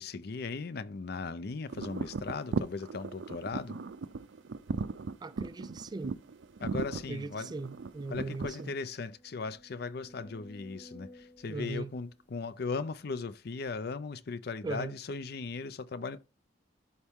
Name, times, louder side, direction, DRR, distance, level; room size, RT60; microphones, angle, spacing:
voice 1, 0.0-3.8 6.6-7.5 8.1-16.3, left 4 dB, 60° left, 0.5 m, -38 dB
sound 1, 1.7-8.7, right 4 dB, 80° right, 0.5 m, -37 dB
voice 2, 5.2-6.2 7.1-8.8 11.5-11.9 14.6-15.0, right 3 dB, 20° right, 0.3 m, -39 dB
sound 2, 7.6-7.7 8.1-8.2 8.8-13.0 13.7-13.8, equal, 10° left, 1.5 m, -56 dB
13.0 x 4.3 x 3.6 m
head